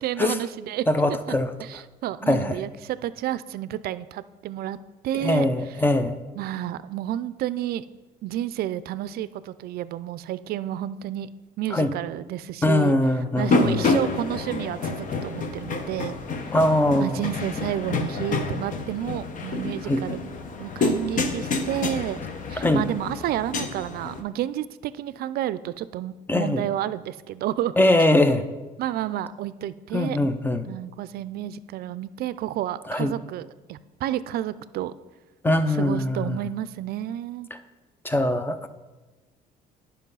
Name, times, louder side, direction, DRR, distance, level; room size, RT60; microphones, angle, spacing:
voice 1, 0.0-0.9 1.3-1.4 1.6-4.8 5.0-5.5 6.4-7.8 8.2-12.9 13.4-16.2 16.9-20.2 20.6-22.2 22.5-27.7 28.8-30.2 30.7-34.9 35.8-37.5, right 12 dB, 65° right, 16 dB, 0.4 m, -30 dB
voice 2, 0.9-1.5 2.3-2.6 5.1-6.2 11.7-11.9 12.6-13.9 16.5-17.2 19.8-20.0 22.6-22.8 26.3-26.6 27.8-28.4 29.9-30.6 32.9-33.1 35.4-36.4 38.0-38.7, left 1 dB, 10° left, 10 dB, 0.6 m, -22 dB
sound 1, 13.4-24.2, left 3 dB, 50° left, 1.0 m, -28 dB
9.9 x 5.6 x 5.5 m, 1.2 s
cardioid pair, 110°, 17 cm